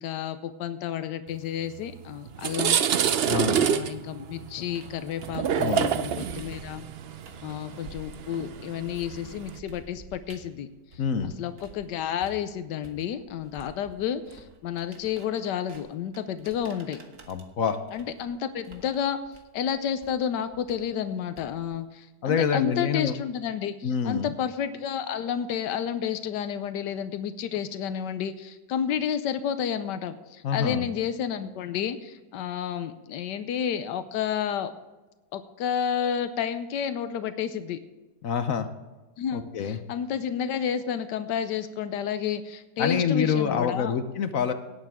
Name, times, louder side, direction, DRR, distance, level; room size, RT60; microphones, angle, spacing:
voice 1, 0.0-2.8 3.6-6.8 7.4-17.0 17.9-19.2 19.5-34.7 35.3-37.8 39.2-43.9, left 8 dB, 90° left, 11 dB, 1.3 m, -31 dB
sound 1, 1.8-1.9 2.3-9.6, right 8 dB, 75° right, 0.5 m, -27 dB
sound 2, 4.5-11.9 12.2-21.8, right 3 dB, 50° right, 1.6 m, -50 dB
voice 2, 11.0-11.3 17.3-17.8 22.2-23.1 23.8-24.3 30.4-30.9 38.2-38.7 39.3-39.8 42.8-44.5, left 7 dB, 60° left, 9 dB, 1.1 m, -26 dB
18.0 x 8.9 x 3.6 m, 1.2 s
omnidirectional pair, 1.8 m